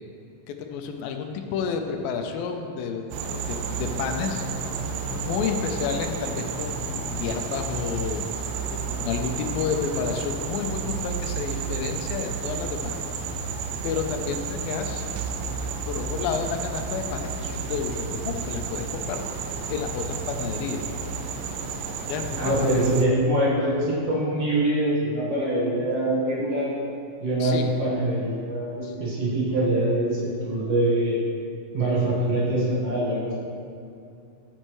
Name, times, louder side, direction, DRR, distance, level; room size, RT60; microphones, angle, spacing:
voice 1, 0.5-4.4 5.0-8.2 8.7-13.0 13.8-15.1 15.9-20.9 22.1-22.8 27.4-27.7 28.8-28.9, left 6 dB, 85° left, 5 dB, 2.5 m, -30 dB
sound 1, 3.1-23.0, right 5 dB, 90° right, 2.5 m, -31 dB
voice 2, 22.4-26.7 27.2-31.2 31.7-33.3, right 1 dB, 50° right, -7 dB, 2.3 m, -24 dB
14.5 x 6.6 x 3.1 m, 2.5 s
omnidirectional pair, 4.0 m